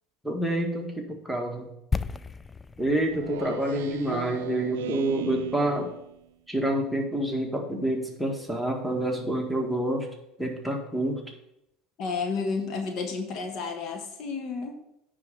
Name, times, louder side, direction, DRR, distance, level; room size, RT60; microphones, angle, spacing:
voice 1, 0.2-1.7 2.8-5.9 6.5-10.1 10.4-11.3, right 1 dB, ahead, 0 dB, 1.8 m, -28 dB
sound 1, 1.9-5.8 6.1-6.2, left 5 dB, 20° left, 0.4 m, -36 dB
Speech synthesizer, 3.1-6.1, right 12 dB, 80° right, 0.4 m, -37 dB
voice 2, 12.0-14.7, left 4 dB, 55° left, 4 dB, 1.3 m, -31 dB
9.4 x 3.7 x 6.9 m, 0.81 s
hypercardioid pair, 80°, 0 cm